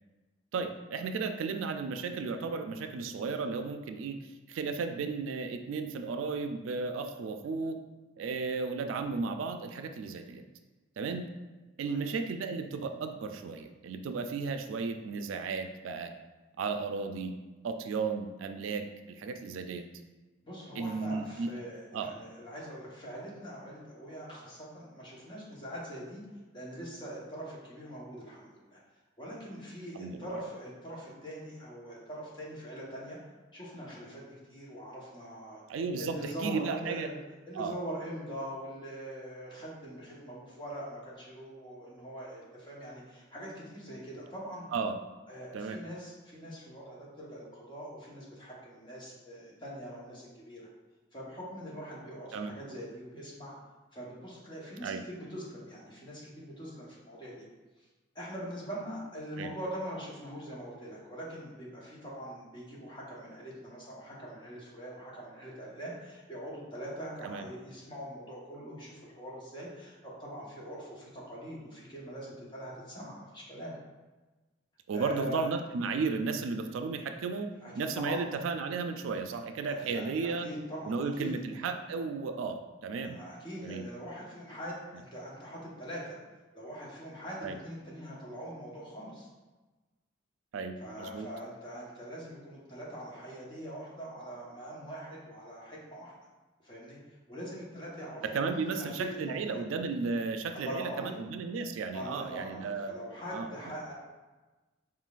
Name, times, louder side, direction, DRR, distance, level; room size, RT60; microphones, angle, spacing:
voice 1, 0.5-4.2 4.5-7.8 8.2-10.4 11.0-11.3 11.8-16.1 16.6-17.3 17.6-19.8 20.8-21.5 21.9-22.1 30.0-30.3 35.7-36.1 36.4-37.1 37.5-37.8 44.7-44.9 45.5-45.8 52.3-52.5 54.8-55.0 59.4-59.5 67.2-67.5 74.9-80.5 80.9-83.2 83.6-83.8 87.4-87.5 90.5-91.3 98.3-102.9 103.3-103.5, right 4 dB, 80° right, 6 dB, 0.3 m, -34 dB
voice 2, 20.4-26.2 26.5-28.8 29.2-33.2 33.5-35.6 36.0-37.2 37.5-44.6 45.3-50.7 51.1-53.5 53.9-57.4 57.8-57.9 58.1-73.8 74.9-75.5 77.6-78.2 79.8-81.4 83.1-86.2 86.5-89.3 90.8-96.1 96.6-97.0 97.3-99.6 100.5-101.1 101.9-103.9, equal, 25° left, -5 dB, 1.0 m, -42 dB
4.5 x 3.8 x 2.4 m, 1.2 s
head